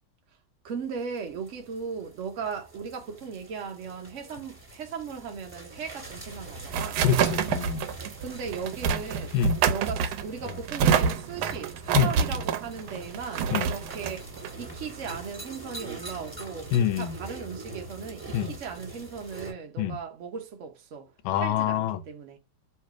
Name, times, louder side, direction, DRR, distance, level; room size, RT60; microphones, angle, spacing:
voice 1, 0.6-7.0 8.2-9.3 9.7-21.1 21.4-22.4, right 6 dB, 65° right, 0.7 m, -37 dB
sound 1, 0.7-19.5, right 2 dB, 10° right, 1.8 m, -44 dB
trash can, 6.1-15.4, right 7 dB, 85° right, 1.4 m, -28 dB
voice 2, 7.0-7.9 9.3-9.6 11.9-12.1 13.5-13.7 16.7-17.1 18.3-18.5 19.8-20.0 21.2-22.0, left 9 dB, 85° left, 1.4 m, -25 dB
3.4 x 3.2 x 4.7 m
omnidirectional pair, 2.2 m